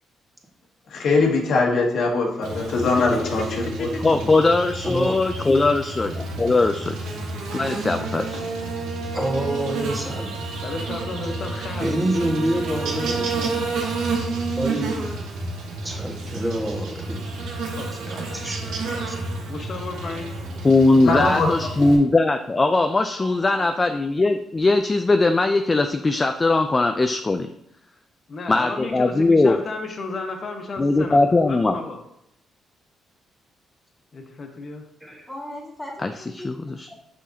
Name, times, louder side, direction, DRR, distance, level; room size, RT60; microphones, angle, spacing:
voice 1, 0.9-3.5 3.8-3.9 21.0-21.5, left 3 dB, 65° left, 0 dB, 1.1 m, -21 dB
Buzz, 2.4-22.0, right 3 dB, 90° right, 1.1 m, -30 dB
voice 2, 3.5-4.0 10.6-11.9 17.7-17.9 19.5-20.3 28.3-32.0 34.1-34.8, left 3 dB, 45° left, 3 dB, 1.1 m, -33 dB
voice 3, 4.0-7.1 7.5-8.4 20.6-27.5 28.5-29.6 30.8-31.8 36.0-36.9, left 2 dB, 25° left, 6 dB, 0.3 m, -20 dB
voice 4, 4.8-5.2 9.1-10.4 11.8-13.6 14.6-15.0 15.8-17.2 17.9-19.2 35.0-35.3, right 1 dB, 15° right, 0 dB, 1.5 m, -27 dB
voice 5, 21.3-21.7 23.2-23.7 35.3-36.5 36.9-37.0, left 1 dB, 5° left, -2 dB, 1.9 m, -37 dB
6.1 x 5.7 x 2.7 m, 0.78 s
cardioid pair, 90°, 0 cm